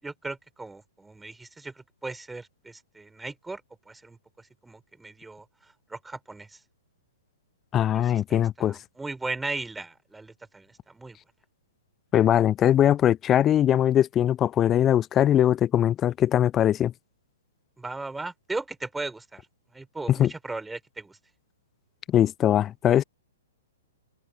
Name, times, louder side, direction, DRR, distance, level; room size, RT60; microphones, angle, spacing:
voice 1, 0.0-3.6 3.9-5.4 5.9-6.6 7.9-11.2 17.8-19.5 19.7-21.2, right 3 dB, 5° right, 6.5 m, -37 dB
voice 2, 7.7-8.8 12.1-16.9 20.1-20.3 22.1-23.0, left 11 dB, 20° left, 0.6 m, -21 dB
open air
figure-of-eight pair, 115°, 0 cm